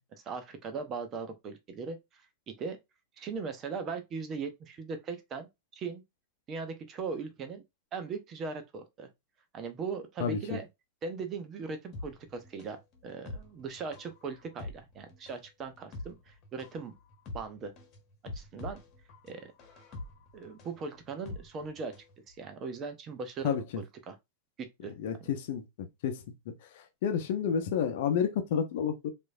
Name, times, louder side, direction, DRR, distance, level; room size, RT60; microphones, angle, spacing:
voice 1, 0.1-2.2 2.5-2.8 3.2-5.5 5.8-6.0 6.5-7.6 7.9-9.1 9.5-10.7 11.0-16.9 17.3-17.7 18.3-18.8 19.2-19.5 20.3-21.9 22.3-24.2 24.6-24.9 25.2-25.3, right 5 dB, 30° right, 0.8 m, -39 dB
voice 2, 10.2-10.6 23.4-23.6 25.0-26.2 27.0-29.1, left 7 dB, 55° left, 0.8 m, -30 dB
sound 1, 11.9-22.1 22.4-22.5, left 2 dB, 35° left, 1.3 m, -45 dB
4.6 x 2.8 x 2.6 m
figure-of-eight pair, 90°, 0 cm